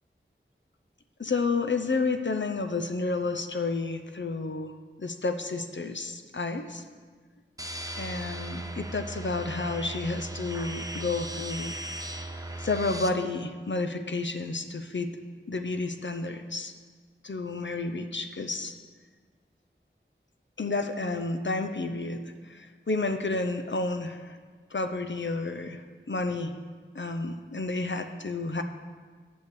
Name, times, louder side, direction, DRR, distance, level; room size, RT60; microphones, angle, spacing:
voice 1, 1.2-4.7 5.0-6.8 8.0-11.8 12.6-15.1 15.5-16.7 17.2-18.7 20.6-24.4 24.7-25.8 26.1-26.5 26.9-28.6, left 3 dB, 65° left, 6 dB, 0.7 m, -31 dB
sound 1, 7.6-13.1, right 1 dB, 15° right, 0.7 m, -37 dB
8.2 x 6.5 x 6.9 m, 1.5 s
wide cardioid pair, 40°, 21 cm